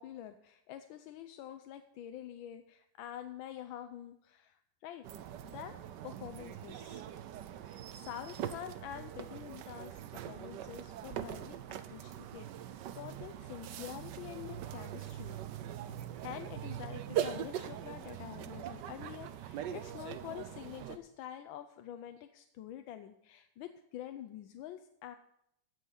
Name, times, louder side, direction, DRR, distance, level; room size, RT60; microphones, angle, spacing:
voice 1, 0.0-5.0 5.4-7.0 7.6-15.4 16.2-25.2, left 11 dB, 75° left, 8 dB, 1.4 m, -47 dB
sound 1, 5.0-21.0, right 10 dB, 65° right, 1.2 m, -42 dB
16.0 x 6.3 x 5.7 m, 0.77 s
omnidirectional pair, 2.3 m